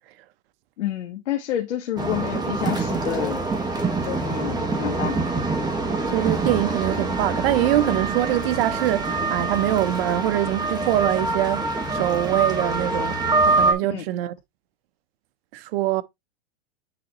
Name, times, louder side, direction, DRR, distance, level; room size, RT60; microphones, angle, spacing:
voice 1, 0.8-3.4 4.0-5.2 13.9-14.0, left 11 dB, 80° left, 1.6 m, -29 dB
sound 1, 2.0-13.7, right 3 dB, 10° right, 1.6 m, -25 dB
voice 2, 6.1-13.2 13.4-14.3 15.5-16.0, right 15 dB, 55° right, 0.9 m, -23 dB
9.4 x 4.0 x 3.0 m
hypercardioid pair, 125°, 35 cm